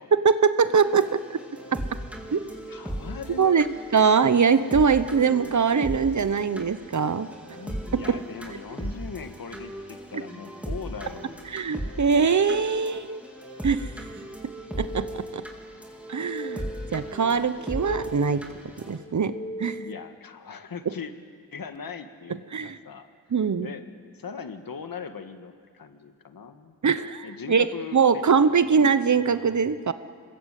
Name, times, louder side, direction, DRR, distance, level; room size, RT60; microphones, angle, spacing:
voice 1, 0.2-1.4 1.7-1.8 2.3-2.4 3.4-3.7 3.9-7.3 7.9-8.2 11.5-13.2 13.6-13.9 14.8-15.4 16.1-16.6 16.9-18.4 18.8-19.3 19.6-19.8 22.5-22.8 23.3-23.7 26.8-27.7 27.9-29.9, right 6 dB, 55° right, 13 dB, 1.0 m, -22 dB
sound 1, 0.7-19.0, equal, 5° right, 3.9 m, -38 dB
voice 2, 2.7-3.6 7.5-11.5 19.8-21.1 21.5-23.1 23.6-23.8 24.1-26.7 27.2-28.9, left 5 dB, 70° left, 7 dB, 1.8 m, -40 dB
sound 2, 14.4-15.6 15.9-17.1 17.4-18.6 19.0-20.1, equal, 35° left, 5.3 m, -38 dB
27.0 x 21.0 x 8.4 m, 2.1 s
wide cardioid pair, 75°, 36 cm